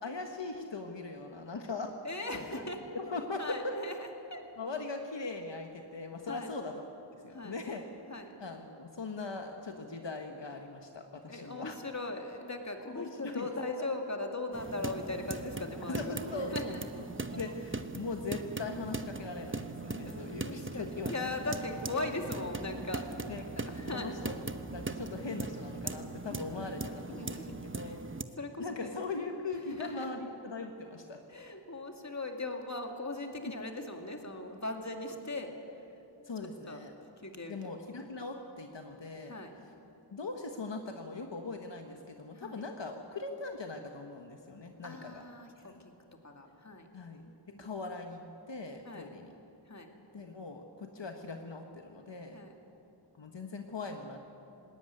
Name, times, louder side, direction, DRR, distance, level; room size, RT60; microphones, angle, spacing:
voice 1, 0.0-1.9 2.9-3.7 4.6-6.7 7.2-7.8 8.4-11.8 12.9-13.5 13.8-13.9 15.9-17.0 17.3-21.3 23.3-23.4 23.9-24.4 24.7-28.0 28.6-31.2 36.2-36.9 37.5-39.3 40.1-45.2 45.6-45.7 46.9-49.3 50.1-52.4 53.2-54.2, left 3 dB, 70° left, 4 dB, 1.4 m, -40 dB
voice 2, 2.0-2.8 3.4-4.4 6.3-6.5 7.3-7.6 8.1-8.3 11.3-16.8 17.3-17.4 19.9-23.1 23.6-24.1 26.2-27.6 27.8-28.0 28.4-28.9 29.7-30.2 31.3-35.5 36.7-36.8 37.2-37.7 39.3-39.5 42.3-42.6 44.8-45.7 46.2-46.9 47.5-47.7 48.8-49.1 49.7-49.9 52.3-52.5, left 2 dB, 40° left, 3 dB, 2.4 m, -39 dB
sound 1, 14.5-28.2, right 3 dB, 25° right, 0.9 m, -40 dB
20.0 x 18.0 x 9.7 m, 2.8 s
wide cardioid pair, 70°, 45 cm